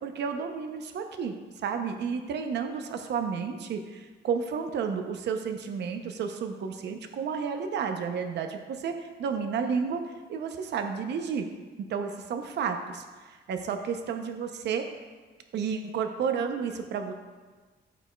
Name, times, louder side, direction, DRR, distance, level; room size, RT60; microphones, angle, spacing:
voice 1, 0.0-10.0 10.3-11.5 11.9-14.9 15.5-17.1, right 6 dB, 70° right, 6 dB, 0.6 m, -31 dB
13.0 x 5.1 x 2.2 m, 1.4 s
cardioid pair, 135°, 19 cm